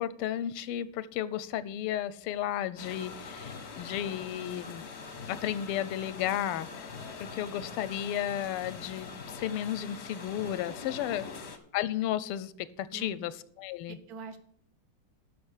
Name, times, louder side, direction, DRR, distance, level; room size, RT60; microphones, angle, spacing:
voice 1, 0.0-4.9 5.3-6.9 7.2-11.3 11.7-12.5 12.8-14.0, left 11 dB, 90° left, 16 dB, 1.6 m, -33 dB
sound 1, 2.8-11.6, left 4 dB, 45° left, 0.9 m, -43 dB
voice 2, 13.9-14.4, right 5 dB, 55° right, 11 dB, 1.2 m, -45 dB
12.0 x 5.5 x 6.5 m, 0.66 s
omnidirectional pair, 2.4 m